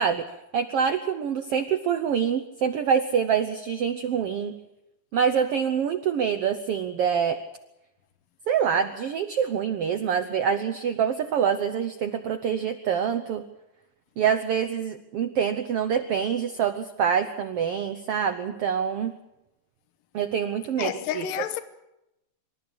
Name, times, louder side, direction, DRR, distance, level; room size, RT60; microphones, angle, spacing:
voice 1, 0.0-4.5 5.1-7.4 8.5-13.4 14.2-19.1 20.1-21.3, right 7 dB, 80° right, 1.3 m, -25 dB
voice 2, 20.8-21.6, left 10 dB, 80° left, 2.7 m, -30 dB
25.5 x 13.5 x 8.6 m
omnidirectional pair, 3.9 m